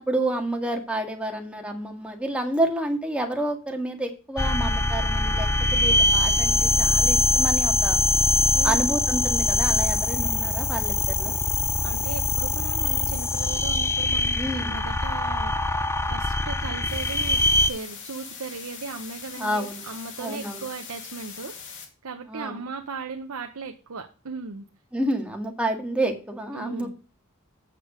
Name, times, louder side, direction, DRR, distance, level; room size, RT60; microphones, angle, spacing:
voice 1, 0.0-8.0 8.6-11.4 14.4-14.8 19.4-19.8 20.2-20.6 22.3-22.6 24.9-26.9, right 1 dB, 5° right, 2 dB, 1.9 m, -29 dB
sound 1, 4.4-17.7, left 2 dB, 10° left, 0.4 m, -23 dB
voice 2, 8.5-8.9 11.8-17.4 17.7-24.7 26.5-26.9, right 4 dB, 80° right, 6 dB, 0.9 m, -37 dB
sound 2, 16.8-21.8, left 6 dB, 60° left, 2.3 m, -41 dB
8.5 x 6.6 x 5.0 m, 0.35 s
head